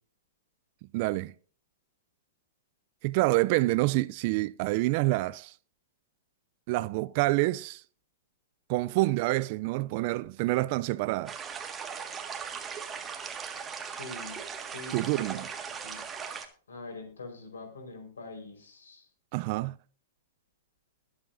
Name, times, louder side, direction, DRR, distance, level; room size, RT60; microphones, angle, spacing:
voice 1, 0.9-1.3 3.0-5.5 6.7-7.8 8.7-11.4 14.9-15.5 19.3-19.7, right 20 dB, 50° right, 0.4 m, -27 dB
sound 1, 11.3-16.5, right 6 dB, 20° right, 1.7 m, -38 dB
voice 2, 13.8-15.2 15.8-16.0 16.7-19.1, left 3 dB, 80° left, 4.5 m, -44 dB
21.0 x 7.7 x 2.6 m
hypercardioid pair, 110°, 0 cm